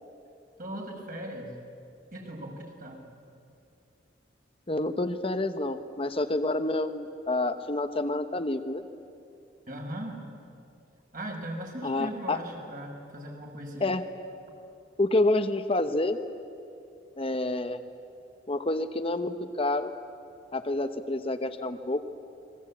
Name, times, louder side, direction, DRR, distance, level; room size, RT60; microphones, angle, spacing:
voice 1, 0.6-1.5 2.1-3.0 9.7-10.2 11.1-13.9, right 1 dB, 50° right, 0 dB, 5.8 m, -38 dB
voice 2, 4.7-8.8 11.8-12.4 13.8-14.0 15.0-16.2 17.2-17.8 18.5-19.9 20.5-22.0, left 2 dB, 30° left, 8 dB, 0.9 m, -28 dB
29.0 x 22.0 x 8.6 m, 2.5 s
head